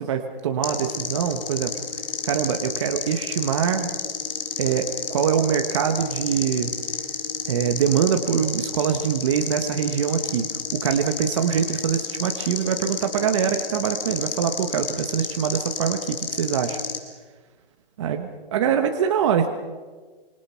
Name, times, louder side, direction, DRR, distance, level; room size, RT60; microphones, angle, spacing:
voice 1, 0.0-1.8 2.2-3.9 4.6-6.7 7.5-16.8 18.0-19.5, right 8 dB, 30° right, 6 dB, 1.3 m, -24 dB
sound 1, 0.6-17.0, left 6 dB, 65° left, 3.7 m, -31 dB
27.0 x 25.5 x 5.8 m, 1.4 s
hypercardioid pair, 170°, 30 cm